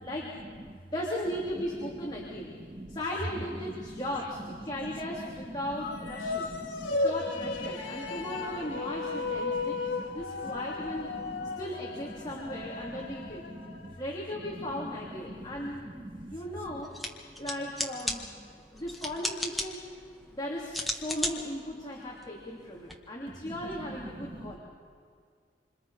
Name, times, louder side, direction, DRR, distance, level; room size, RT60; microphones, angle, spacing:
voice 1, 0.0-0.4 0.9-2.5 2.9-6.5 6.9-11.1 11.6-13.5 14.0-15.9 16.3-16.9 17.4-18.3 18.7-19.9 20.3-24.6, left 1 dB, 20° left, -5 dB, 3.1 m, -37 dB
sound 1, 5.7-14.2, left 3 dB, 80° left, 1.5 m, -35 dB
voice 2, 6.5-6.9 9.6-10.0 11.5-11.6 13.6-13.9 16.2-16.3 24.2-24.6, right 1 dB, 25° right, 0 dB, 2.0 m, -44 dB
sound 2, 16.8-22.9, left 1 dB, ahead, 1.6 m, -37 dB
27.5 x 26.5 x 5.0 m, 2.1 s
head